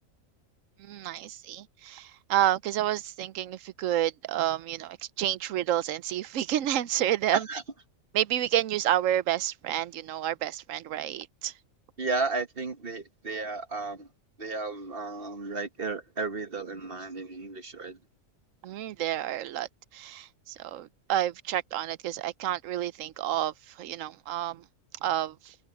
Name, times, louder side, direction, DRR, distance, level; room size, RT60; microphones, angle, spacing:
voice 1, 0.8-7.5 8.1-11.5 18.6-24.6 25.0-25.5, right 12 dB, 75° right, 1.0 m, -29 dB
voice 2, 7.3-7.6 12.0-14.1 14.4-18.0, right 3 dB, 45° right, 1.5 m, -33 dB
omnidirectional pair, 1.4 m